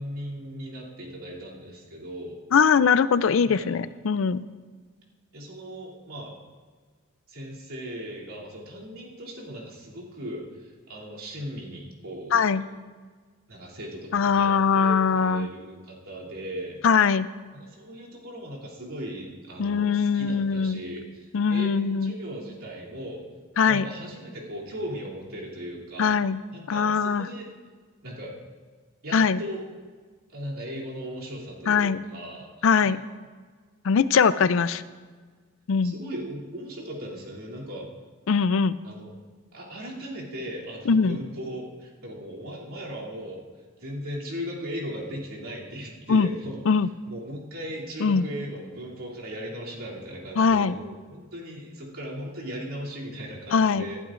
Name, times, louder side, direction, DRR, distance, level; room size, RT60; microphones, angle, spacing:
voice 1, 0.0-2.4 3.4-3.7 5.3-6.3 7.3-12.6 13.5-16.8 17.5-23.2 23.7-26.2 26.5-27.5 28.0-28.3 29.0-29.6 30.3-33.0 35.8-37.9 38.8-39.1 39.5-43.4 43.8-46.6 47.0-54.0, equal, 85° right, -5 dB, 2.9 m, -38 dB
voice 2, 2.5-4.4 12.3-12.6 14.1-15.5 16.8-17.3 19.6-20.8 21.3-22.1 23.6-23.8 26.0-26.4 26.7-27.3 29.1-29.4 31.7-32.0 32.6-33.0 33.8-34.8 35.7-35.9 38.3-38.8 40.9-41.2 46.1-46.3 46.7-46.9 48.0-48.2 50.4-50.7 53.5-53.8, left 6 dB, 65° left, 15 dB, 0.4 m, -21 dB
19.0 x 12.0 x 2.5 m, 1.5 s
head